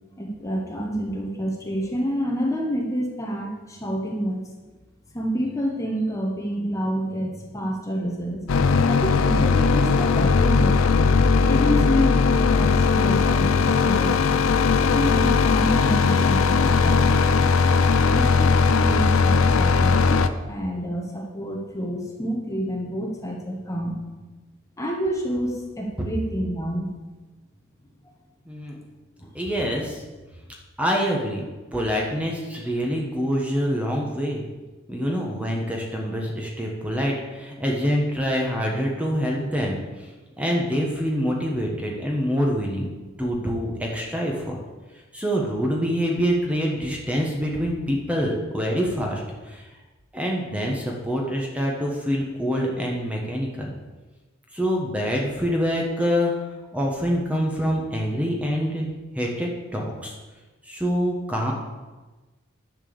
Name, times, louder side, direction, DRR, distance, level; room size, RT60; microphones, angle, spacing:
voice 1, 0.2-4.4 5.1-8.4 8.9-10.8 11.3-14.1 14.8-17.2 18.1-24.0 24.8-26.9 29.2-29.3, equal, 15° left, -1 dB, 1.2 m, -28 dB
sound 1, 8.5-20.3, left 4 dB, 90° left, 0.5 m, -19 dB
voice 2, 28.5-28.8 29.3-30.0 30.8-31.4 31.7-34.4 34.9-40.1 40.4-42.9 43.2-44.6 45.1-49.6 50.1-53.7 54.5-56.3 56.7-58.9 59.1-60.1 60.7-61.5, equal, 5° right, -1 dB, 1.3 m, -25 dB
11.0 x 4.6 x 7.0 m, 1.2 s
head